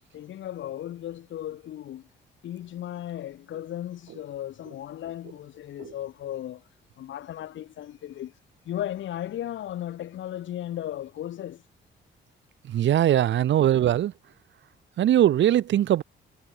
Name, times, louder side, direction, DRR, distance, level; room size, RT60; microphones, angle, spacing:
voice 1, 0.1-2.0 2.4-6.6 7.0-8.3 8.6-11.6, left 12 dB, 75° left, 3.2 m, -36 dB
voice 2, 12.7-14.1 15.0-16.0, right 12 dB, 70° right, 1.4 m, -20 dB
cardioid pair, 90°, 20 cm